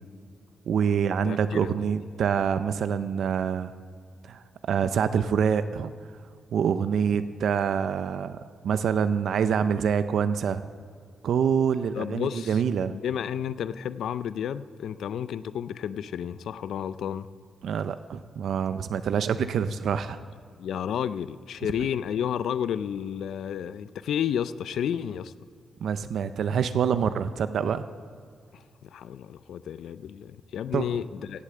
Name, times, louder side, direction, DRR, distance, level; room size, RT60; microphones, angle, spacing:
voice 1, 0.7-3.7 4.2-5.9 6.5-8.4 8.6-10.6 11.2-12.9 17.6-20.2 25.8-27.8 30.7-30.8, right 7 dB, 70° right, 12 dB, 0.5 m, -26 dB
voice 2, 1.2-1.8 11.9-12.6 12.9-17.3 20.6-25.3 28.5-31.4, left 9 dB, 80° left, 15 dB, 0.4 m, -31 dB
16.5 x 8.3 x 7.6 m, 2.3 s
cardioid pair, 130°, 0 cm